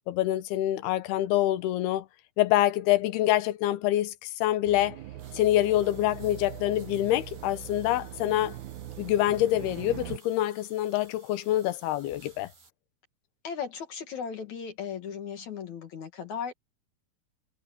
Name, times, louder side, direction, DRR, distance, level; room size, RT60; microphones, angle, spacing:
voice 1, 0.1-2.1 2.4-5.0 5.3-8.6 9.0-12.5, left 14 dB, 80° left, 2.9 m, -26 dB
sound 1, 4.6-10.2, right 12 dB, 85° right, 1.7 m, -41 dB
sound 2, 5.2-12.7, right 4 dB, 70° right, 10.0 m, -57 dB
voice 2, 13.4-16.5, left 7 dB, 55° left, 2.7 m, -36 dB
omnidirectional pair, 4.6 m